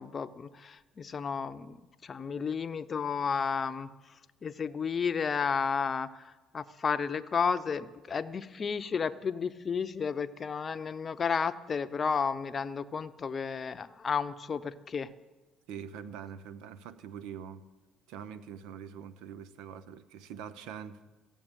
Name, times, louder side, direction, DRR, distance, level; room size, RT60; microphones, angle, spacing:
voice 1, 0.0-1.8 2.0-3.9 4.4-15.1, left 6 dB, 35° left, 13 dB, 0.7 m, -32 dB
voice 2, 15.7-17.6 18.1-21.0, right 8 dB, 80° right, 14 dB, 0.8 m, -44 dB
14.5 x 7.1 x 9.0 m, 1.2 s
supercardioid pair, 90°, 0 cm